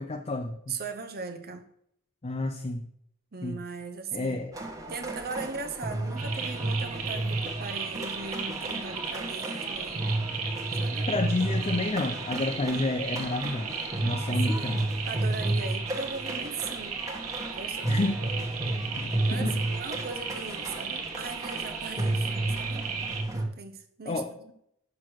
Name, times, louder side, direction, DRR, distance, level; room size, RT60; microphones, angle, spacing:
voice 1, 0.0-0.7 2.2-2.9 3.4-3.6 4.1-4.5 11.1-14.9 17.9-18.2 19.0-19.5 24.1-24.3, left 2 dB, 30° left, 6 dB, 0.6 m, -30 dB
voice 2, 0.7-1.7 3.3-4.4 4.9-10.1 10.8-11.1 14.3-14.7 15.1-17.1 17.5-18.2 19.3-22.3 22.6-22.9 23.3-24.5, right 4 dB, 45° right, 7 dB, 0.7 m, -39 dB
sound 1, 4.5-23.4, right 1 dB, 15° right, 1.2 m, -32 dB
sound 2, 6.2-23.2, right 6 dB, 85° right, 1.4 m, -36 dB
6.3 x 6.0 x 6.3 m, 0.73 s
head